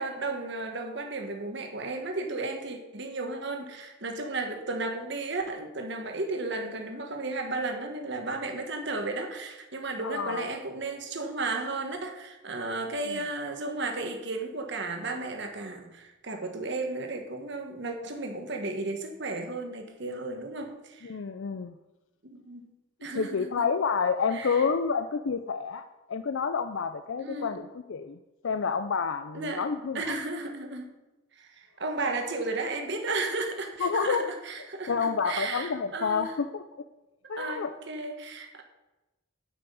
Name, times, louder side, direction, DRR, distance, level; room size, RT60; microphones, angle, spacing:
voice 1, 0.0-21.1 22.2-22.7 23.0-23.7 24.3-24.7 27.2-27.6 29.3-29.7 29.9-30.9 31.3-36.3 37.4-38.6, right 3 dB, 55° right, 4 dB, 1.4 m, -34 dB
voice 2, 10.0-10.5 13.1-13.2 21.0-21.7 23.1-28.2 28.4-30.0 33.8-34.4 34.9-36.6 37.3-37.7, left 5 dB, 70° left, 9 dB, 0.5 m, -29 dB
9.5 x 6.1 x 8.6 m, 1.1 s
head